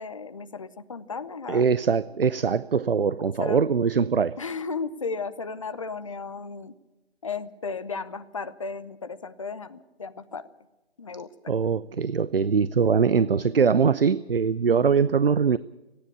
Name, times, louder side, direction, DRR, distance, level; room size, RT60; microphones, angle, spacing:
voice 1, 0.0-1.6 3.4-3.6 4.4-6.7 7.2-10.5 11.0-11.5, left 4 dB, 30° left, 0.8 m, -35 dB
voice 2, 1.5-4.4 11.5-15.6, right 6 dB, 60° right, 0.6 m, -22 dB
30.0 x 10.5 x 8.5 m
figure-of-eight pair, 155°, 32 cm